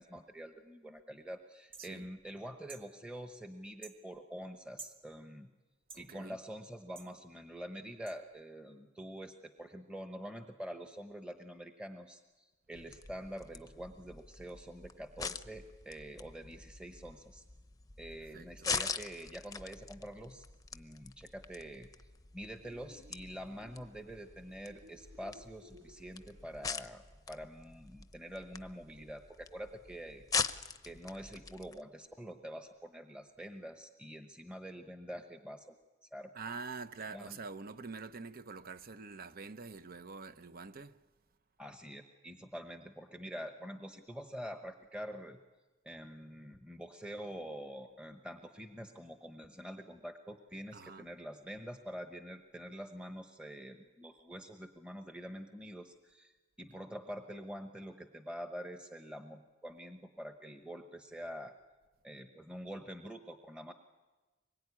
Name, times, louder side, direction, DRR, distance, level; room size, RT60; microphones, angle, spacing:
voice 1, 0.0-5.5 6.0-17.4 18.0-20.4 20.7-21.9 22.3-30.2 30.8-35.7 36.1-36.3 37.1-37.4 41.6-45.4 45.8-61.5 62.0-63.7, equal, 5° right, 1.1 m, -46 dB
sound 1, 1.7-1.9 2.7-2.9 3.8-4.0 4.8-5.0 5.9-6.1 7.0-7.1 8.1-8.2, right 4 dB, 30° right, 1.8 m, -50 dB
voice 2, 5.9-6.4 18.3-18.8 36.3-41.0 50.7-51.1, right 4 dB, 50° right, 0.8 m, -46 dB
sound 2, 12.7-31.8, left 5 dB, 20° left, 0.8 m, -43 dB
sound 3, 22.6-26.6, left 1 dB, 70° right, 2.6 m, -61 dB
25.0 x 22.0 x 9.8 m
head